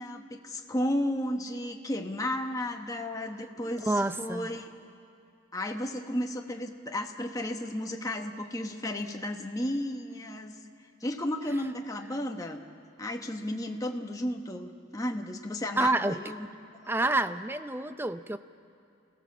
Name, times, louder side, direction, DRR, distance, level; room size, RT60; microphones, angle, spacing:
voice 1, 0.0-4.7 5.5-10.5 11.0-12.6 13.0-16.5 16.8-16.9, left 1 dB, 15° left, 3 dB, 1.2 m, -33 dB
voice 2, 3.8-4.5 15.8-16.2 16.9-18.4, right 2 dB, 10° right, 11 dB, 0.5 m, -28 dB
28.5 x 17.0 x 7.4 m, 2.5 s
head